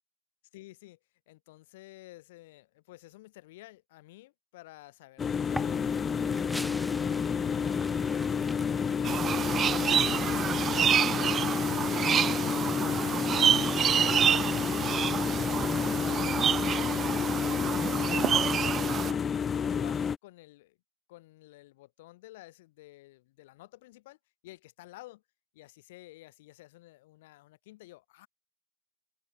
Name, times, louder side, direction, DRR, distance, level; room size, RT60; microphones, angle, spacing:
voice 1, 0.5-1.0 1.3-8.5 9.1-9.8 10.5-14.5 15.1-17.0 17.5-18.4 19.0-20.8 21.1-25.2 25.5-28.3, left 18 dB, 85° left, 3.5 m, -52 dB
sound 1, 5.2-20.2, left 7 dB, 30° left, 0.5 m, -30 dB
sound 2, 5.5-16.0, equal, ahead, 0.9 m, -41 dB
sound 3, 9.0-19.1, right 8 dB, 35° right, 0.4 m, -28 dB
supercardioid pair, 115°, 0 cm